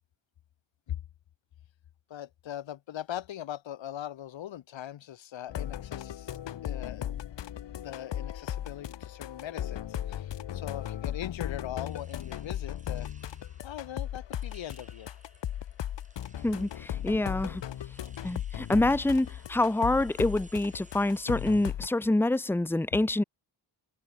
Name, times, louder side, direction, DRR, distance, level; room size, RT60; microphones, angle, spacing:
voice 1, 2.1-7.1 7.8-13.1 13.6-15.1, left 11 dB, 90° left, 2.1 m, -40 dB
sound 1, 5.5-21.9, left 11 dB, 70° left, 1.8 m, -37 dB
sound 2, 11.9-21.7, right 2 dB, 15° right, 6.9 m, -60 dB
voice 2, 16.4-17.6 18.2-23.2, left 2 dB, 5° left, 1.0 m, -26 dB
wide cardioid pair, 150°, 44 cm